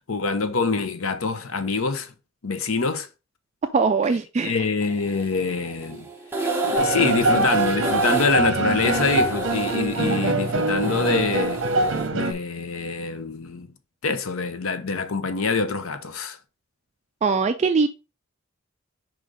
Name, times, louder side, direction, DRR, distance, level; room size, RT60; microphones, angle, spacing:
voice 1, 0.1-2.1 2.4-3.1 4.4-6.1 6.6-11.6 12.1-13.7 14.0-16.4, left 4 dB, 80° left, 0.8 m, -25 dB
voice 2, 3.7-4.5 17.2-17.9, right 4 dB, 35° right, 0.3 m, -21 dB
sound 1, 4.8-12.1, right 2 dB, 10° right, 0.9 m, -30 dB
sound 2, 6.7-12.3, right 2 dB, 60° right, 0.8 m, -24 dB
5.0 x 3.9 x 4.9 m
head